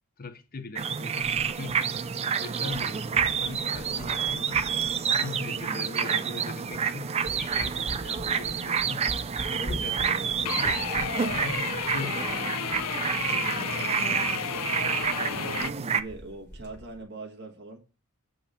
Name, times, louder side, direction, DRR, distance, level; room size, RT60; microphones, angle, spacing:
voice 1, 0.2-2.0 2.4-4.6 5.2-9.1 9.4-10.8 11.3-14.5, left 4 dB, 40° left, 0.7 m, -41 dB
sound 1, 0.8-16.0, right 6 dB, 25° right, 0.4 m, -28 dB
sound 2, 1.2-2.4 2.7-5.6 6.2-6.3 6.7-6.9 7.2-13.3 13.6-13.7 13.9-14.0 14.4-14.6 15.0-15.2 15.4-15.8 16.1-17.0, equal, 15° left, 1.7 m, -43 dB
sound 3, 10.5-15.7, left 8 dB, 75° left, 0.5 m, -32 dB
voice 2, 15.2-17.8, right 2 dB, 50° right, 1.4 m, -41 dB
7.9 x 3.9 x 6.7 m
head